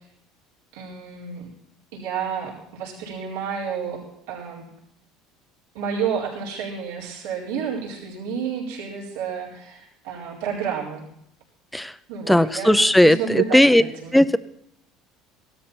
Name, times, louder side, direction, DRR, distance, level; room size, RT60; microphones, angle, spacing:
voice 1, 0.7-1.5 1.9-4.0 4.3-4.7 5.7-11.0 12.1-14.2, right 7 dB, 90° right, -5 dB, 4.6 m, -30 dB
voice 2, 12.3-13.8 14.1-14.4, left 1 dB, 5° left, 14 dB, 0.6 m, -16 dB
16.0 x 12.5 x 4.4 m, 0.74 s
supercardioid pair, 105°, 0 cm